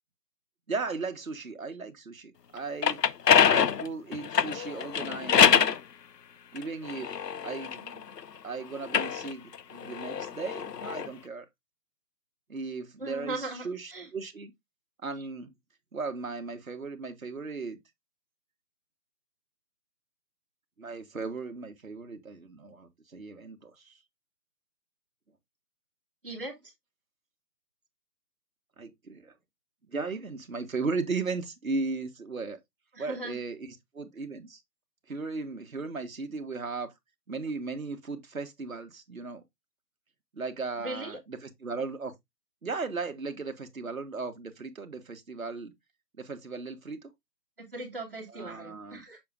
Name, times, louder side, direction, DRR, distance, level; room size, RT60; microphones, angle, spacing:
voice 1, 0.7-3.0 3.4-5.8 6.5-7.1 7.4-8.0 8.4-11.4 12.5-14.5 15.0-15.5 15.9-17.8 20.8-24.0 28.8-29.3 29.9-32.6 33.0-33.7 33.9-34.6 35.1-36.9 37.3-39.4 40.3-42.1 42.6-45.7 46.2-47.1 48.3-49.0, right 4 dB, 55° right, 1.6 m, -36 dB
sound 1, 2.6-5.8 6.6-8.2 8.8-11.1, left 8 dB, 80° left, 0.7 m, -25 dB
voice 2, 13.0-14.1 26.2-26.6 32.9-33.4 40.8-41.2 47.6-49.2, right 2 dB, 35° right, 2.1 m, -38 dB
6.8 x 6.5 x 2.5 m
figure-of-eight pair, 180°, 47 cm